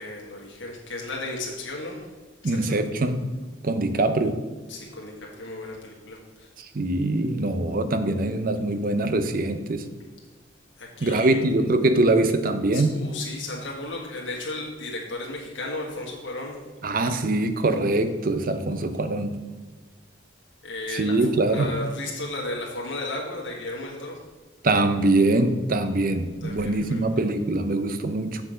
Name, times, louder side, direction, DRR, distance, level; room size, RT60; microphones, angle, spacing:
voice 1, 0.0-2.1 2.4-2.8 4.7-6.5 10.8-11.4 12.7-16.6 20.6-24.2 26.4-27.0, left 2 dB, 70° left, -2 dB, 1.6 m, -34 dB
voice 2, 2.4-3.3 3.6-4.4 6.6-9.8 11.0-13.0 16.8-19.4 20.9-21.7 24.6-28.4, right 2 dB, 45° right, 10 dB, 0.6 m, -23 dB
7.7 x 6.0 x 5.0 m, 1.3 s
head